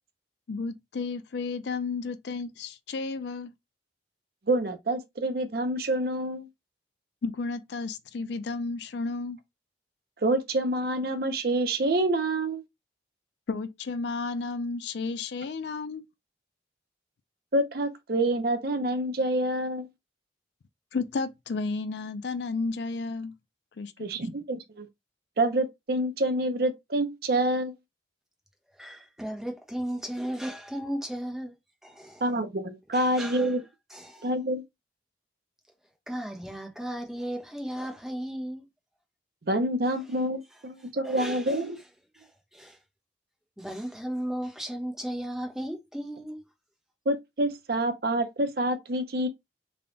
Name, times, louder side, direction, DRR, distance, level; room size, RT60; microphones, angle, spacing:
voice 1, 0.5-3.5 7.2-9.4 13.5-16.0 20.9-23.3 23.8-23.9, left 4 dB, 70° left, 0.4 m, -32 dB
voice 2, 4.5-6.5 10.2-12.6 17.5-19.9 24.0-24.9 25.4-27.7 32.2-33.6 34.2-34.6 39.5-41.8 47.1-49.3, right 1 dB, 55° right, 0.6 m, -27 dB
voice 3, 28.8-31.5 31.8-32.2 32.9-33.5 33.9-34.3 36.1-38.7 41.0-41.7 42.1-42.3 42.5-42.8 43.6-46.4, right 1 dB, ahead, 0.8 m, -35 dB
3.5 x 2.2 x 3.8 m
head